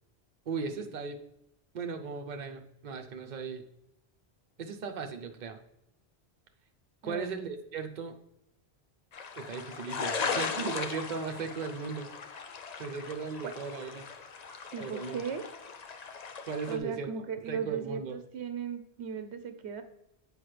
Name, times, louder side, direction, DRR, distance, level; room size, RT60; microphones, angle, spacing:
voice 1, 0.5-1.2 1.7-3.6 4.6-5.6 7.0-8.2 9.4-12.1 12.8-14.0 14.8-15.2 16.5-17.1 17.5-18.2, right 5 dB, 50° right, 4 dB, 0.8 m, -37 dB
sound 1, 9.1-16.8, left 5 dB, 45° left, 0.6 m, -38 dB
voice 2, 14.7-15.4 16.7-19.8, right 6 dB, 85° right, 9 dB, 1.0 m, -37 dB
7.8 x 5.1 x 3.3 m, 0.82 s
omnidirectional pair, 1.1 m